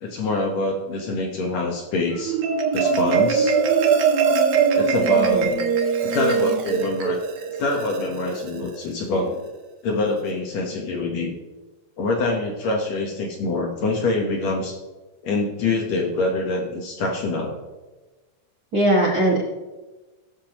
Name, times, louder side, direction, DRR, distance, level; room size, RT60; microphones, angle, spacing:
voice 1, 0.0-2.4 2.7-3.6 4.7-5.5 6.0-7.2 7.5-9.4 9.8-11.4 12.0-14.8 15.2-17.6, left 2 dB, 65° left, 1 dB, 2.0 m, -25 dB
Marimba xylophone, 2.1-8.8, right 6 dB, 70° right, 1.3 m, -21 dB
voice 2, 5.2-5.5 18.7-19.4, right 1 dB, 35° right, -5 dB, 1.8 m, -20 dB
18.0 x 6.8 x 2.9 m, 1.2 s
omnidirectional pair, 3.7 m